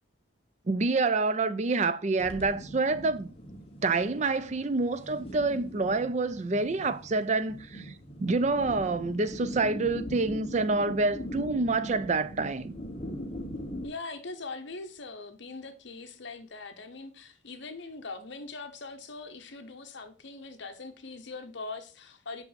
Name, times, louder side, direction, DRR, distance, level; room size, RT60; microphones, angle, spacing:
voice 1, 0.7-3.3 3.8-7.9 8.2-12.7, right 3 dB, 35° right, 0.4 m, -27 dB
sound 1, 2.1-13.9, equal, 30° left, 1.0 m, -41 dB
voice 2, 13.8-22.4, left 3 dB, 60° left, 0.9 m, -41 dB
5.7 x 5.6 x 4.1 m
head